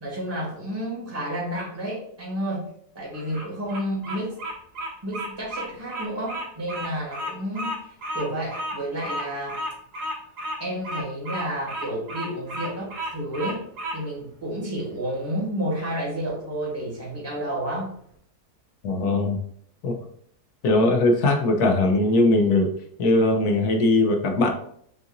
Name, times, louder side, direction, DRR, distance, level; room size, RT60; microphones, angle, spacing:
voice 1, 0.0-4.4 5.0-9.6 10.6-13.6 13.9-17.9, equal, 15° right, -5 dB, 1.2 m, -31 dB
Bird vocalization bird call bird song, 3.1-14.0, equal, 75° right, 1.5 m, -33 dB
voice 2, 18.8-19.4 19.8-19.9 20.6-22.7 23.0-24.5, left 2 dB, 75° left, 4 dB, 1.2 m, -20 dB
6.7 x 2.5 x 2.6 m, 0.65 s
omnidirectional pair, 1.7 m